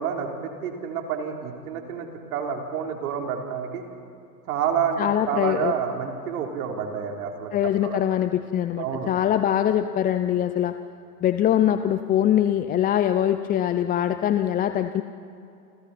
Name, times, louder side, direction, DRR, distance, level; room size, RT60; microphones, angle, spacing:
voice 1, 0.0-3.8 4.5-7.6 7.8-8.0 8.8-9.1, right 7 dB, 65° right, 2 dB, 3.9 m, -29 dB
voice 2, 5.0-5.7 7.5-10.7 11.2-15.0, left 11 dB, 20° left, 10 dB, 0.6 m, -23 dB
29.0 x 28.5 x 4.3 m, 2.6 s
hypercardioid pair, 100°, 48 cm